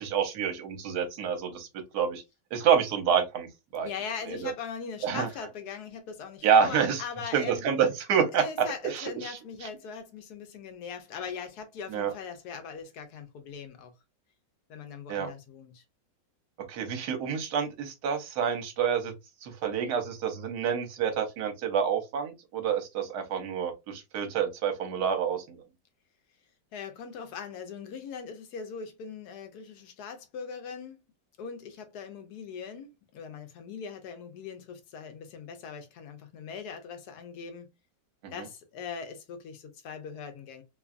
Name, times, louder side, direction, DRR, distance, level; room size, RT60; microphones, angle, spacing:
voice 1, 0.0-1.7 1.9-2.2 2.5-3.5 3.7-3.9 4.3-4.5 5.0-5.3 6.4-7.0 7.3-9.4 11.9-12.1 15.1-15.3 16.7-19.1 19.4-25.6 38.2-38.3, right 7 dB, 65° right, 1.2 m, -28 dB
voice 2, 3.8-7.6 8.3-13.9 14.7-15.8 26.7-31.0 31.4-37.7 38.3-40.6, left 6 dB, 70° left, 1.0 m, -40 dB
3.0 x 2.3 x 2.4 m
omnidirectional pair, 2.0 m